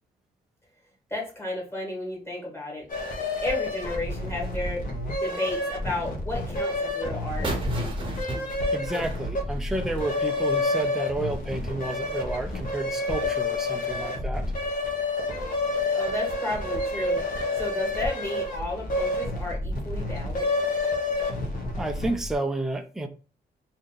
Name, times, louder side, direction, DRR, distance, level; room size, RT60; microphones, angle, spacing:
voice 1, 1.1-2.9 3.4-4.8 5.2-7.5 15.9-17.2 17.5-20.5, left 2 dB, 15° left, 1.7 m, -32 dB
sound 1, 2.9-22.3, left 2 dB, 55° left, 0.9 m, -29 dB
sound 2, 7.4-10.2, right 2 dB, 30° right, 0.8 m, -35 dB
voice 2, 8.7-14.5 21.8-23.1, right 2 dB, 5° right, 0.4 m, -31 dB
2.8 x 2.6 x 3.8 m
cardioid pair, 130°, 17 cm